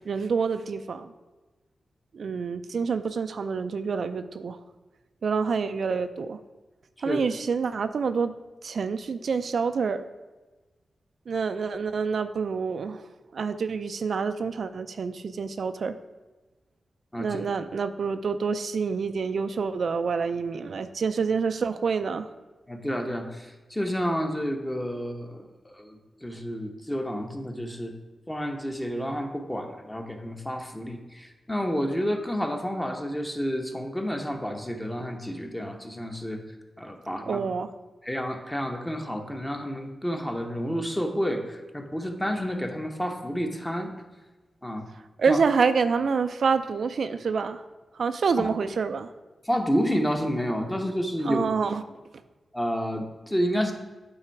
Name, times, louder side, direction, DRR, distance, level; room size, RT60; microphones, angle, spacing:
voice 1, 0.1-1.1 2.1-4.6 5.2-6.4 7.0-8.3 8.6-10.1 11.3-13.0 13.3-15.9 17.2-22.3 37.3-37.7 45.2-47.6 48.0-49.1 51.2-51.8, right 5 dB, 70° right, 9 dB, 0.4 m, -27 dB
voice 2, 22.7-27.9 28.3-36.4 36.8-37.4 38.0-43.9 44.6-44.9 45.3-45.4 48.4-48.5 49.4-51.5 52.5-53.7, equal, 10° left, 3 dB, 0.9 m, -30 dB
8.9 x 3.9 x 4.5 m, 1.2 s
wide cardioid pair, 95°, 0 cm